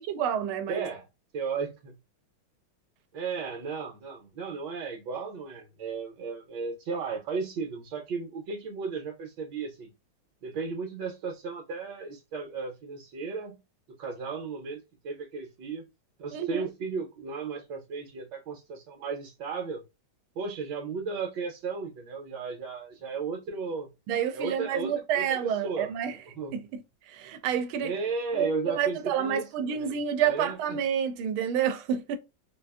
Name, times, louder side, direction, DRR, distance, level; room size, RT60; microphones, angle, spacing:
voice 1, 0.1-0.9 16.3-16.7 24.1-26.1 26.5-26.8 27.1-27.9 28.3-32.2, right 8 dB, 85° right, 1.5 m, -29 dB
voice 2, 0.7-1.1 1.3-2.0 3.1-9.9 10.4-13.6 14.0-15.8 16.2-19.8 20.3-23.9 24.3-25.9 26.3-26.5 27.8-29.9 30.2-30.8, right 4 dB, 65° right, 1.4 m, -35 dB
4.1 x 2.5 x 2.3 m
omnidirectional pair, 2.2 m